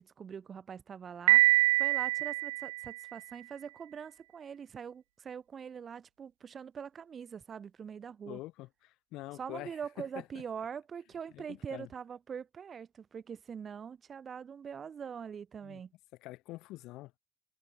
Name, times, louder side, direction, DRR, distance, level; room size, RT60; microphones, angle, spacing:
voice 1, 0.0-8.4 9.4-15.9, right 7 dB, 40° right, 3.3 m, -43 dB
Piano, 1.3-3.2, right 19 dB, 80° right, 0.4 m, -25 dB
voice 2, 8.2-10.2 11.3-11.9 15.6-15.8 16.2-17.1, left 18 dB, 65° left, 5.1 m, -45 dB
hypercardioid pair, 60°, 0 cm